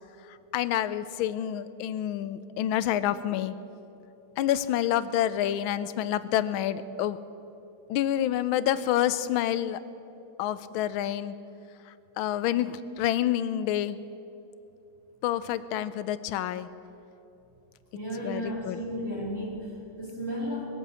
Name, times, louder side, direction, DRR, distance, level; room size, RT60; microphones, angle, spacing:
voice 1, 0.5-3.5 4.4-7.2 7.9-9.8 10.4-11.3 12.2-14.0 15.2-16.7 18.2-18.8, left 11 dB, 80° left, 14 dB, 1.4 m, -28 dB
voice 2, 17.9-20.7, equal, 35° right, -6 dB, 3.0 m, -34 dB
21.0 x 8.4 x 8.2 m, 2.8 s
omnidirectional pair, 2.3 m